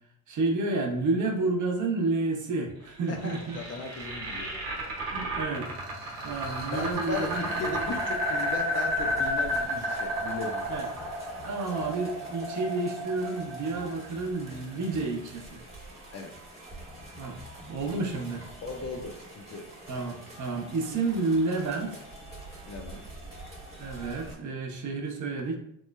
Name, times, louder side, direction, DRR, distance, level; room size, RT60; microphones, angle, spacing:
voice 1, 0.3-3.6 5.1-5.7 6.2-7.4 10.7-10.9 11.5-15.6 17.2-17.4 17.7-18.4 19.9-22.0 23.8-25.6, right 3 dB, 40° right, 2 dB, 0.7 m, -30 dB
sound 1, 2.9-14.9, equal, 90° right, 0.9 m, -32 dB
voice 2, 3.1-4.5 6.7-10.8 16.1-16.3 18.6-19.6 22.7-23.0, left 3 dB, 35° left, 3 dB, 0.4 m, -37 dB
sound 2, 6.0-24.4, right 1 dB, 15° right, 1.0 m, -46 dB
3.0 x 2.0 x 2.2 m, 0.75 s
hypercardioid pair, 65°, 44 cm